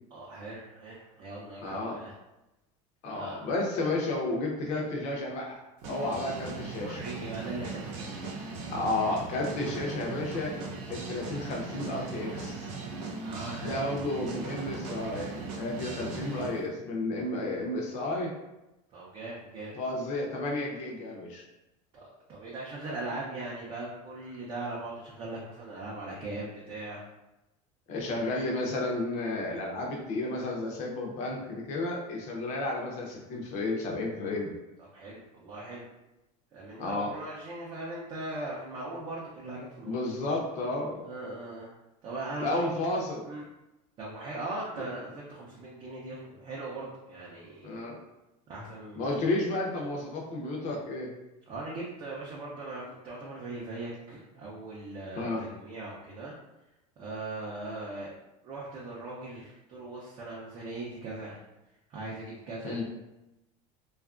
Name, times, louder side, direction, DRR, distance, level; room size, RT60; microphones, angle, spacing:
voice 1, 0.1-2.1 3.0-3.4 6.8-8.4 11.7-11.8 13.2-13.8 18.9-19.8 21.9-27.0 34.8-35.8 36.5-40.0 41.0-41.7 42.0-42.8 43.2-43.4 44.0-47.8 48.5-49.3 51.5-56.4 57.0-58.1 58.4-61.4 61.9-62.8, right 2 dB, 30° right, -5 dB, 0.5 m, -39 dB
voice 2, 1.6-2.0 3.0-5.6 5.9-7.0 8.7-10.6 10.9-12.7 13.6-18.3 19.8-21.4 27.9-34.5 36.8-37.1 39.8-41.0 42.4-43.2 47.6-48.0 48.9-51.1 55.2-55.4 62.6-62.8, left 2 dB, 45° left, 0 dB, 0.6 m, -32 dB
sound 1, 5.8-16.6, right 4 dB, 75° right, 0.7 m, -38 dB
2.7 x 2.4 x 2.4 m, 0.96 s
cardioid pair, 155°, 16 cm